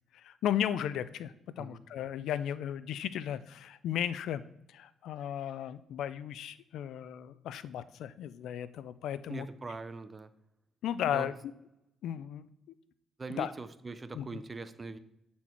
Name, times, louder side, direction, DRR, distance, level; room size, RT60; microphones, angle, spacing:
voice 1, 0.1-4.4 4.7-9.5 10.8-11.4 12.0-12.5 13.3-13.5 14.1-14.3, left 10 dB, 80° left, 15 dB, 0.4 m, -35 dB
voice 2, 9.3-10.3 11.1-11.3 13.2-15.0, right 3 dB, 25° right, 12 dB, 0.5 m, -41 dB
8.6 x 4.2 x 4.5 m, 0.83 s
cardioid pair, 90°, 0 cm